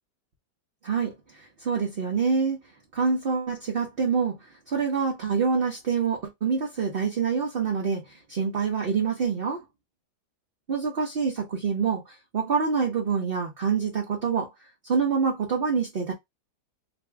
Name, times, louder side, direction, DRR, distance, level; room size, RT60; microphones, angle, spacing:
voice 1, 0.8-2.6 2.9-4.4 4.7-9.6 10.7-12.0 12.3-14.5 14.9-16.1, right 5 dB, 45° right, 0.9 m, -26 dB
2.9 x 2.6 x 3.3 m
omnidirectional pair, 1.7 m